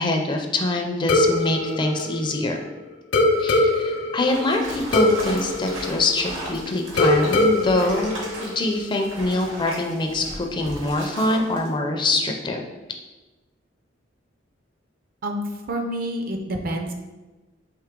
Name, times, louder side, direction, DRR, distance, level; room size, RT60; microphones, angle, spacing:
voice 1, 0.0-2.6 3.4-8.1 8.4-12.6, left 2 dB, 25° left, 3 dB, 0.4 m, -24 dB
sound 1, 1.1-2.7 3.1-6.5 7.0-8.9, left 2 dB, 85° left, 0.7 m, -22 dB
sound 2, 4.2-11.7, right 1 dB, 75° right, 1.3 m, -36 dB
voice 2, 15.2-16.9, right 1 dB, 50° right, 3 dB, 0.5 m, -28 dB
4.6 x 3.1 x 3.6 m, 1.1 s
head